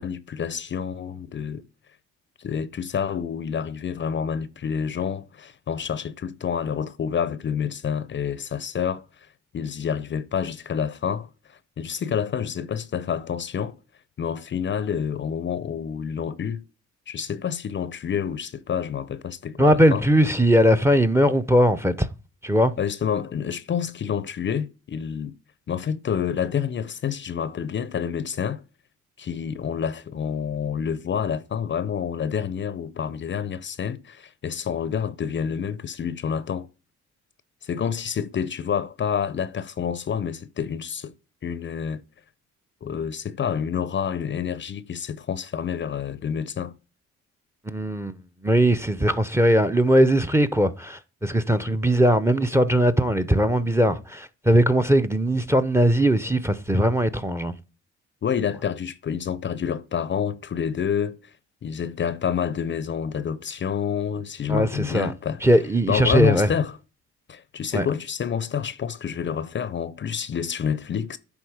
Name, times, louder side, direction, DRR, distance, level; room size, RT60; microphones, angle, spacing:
voice 1, 0.0-1.7 2.4-9.0 9.5-13.8 14.2-16.6 17.1-20.1 22.8-25.3 25.7-28.6 29.2-36.7 37.6-41.1 41.4-42.0 42.8-46.7 58.2-61.3 61.6-65.4 65.9-66.8 67.3-71.2, left 7 dB, 40° left, 0.5 m, -28 dB
voice 2, 19.6-22.1 22.4-22.7 47.7-48.2 48.4-57.5 64.5-65.1 65.4-66.5 67.7-67.9, equal, 10° right, 0.6 m, -20 dB
9.7 x 3.6 x 4.8 m
cardioid pair, 90°, 30 cm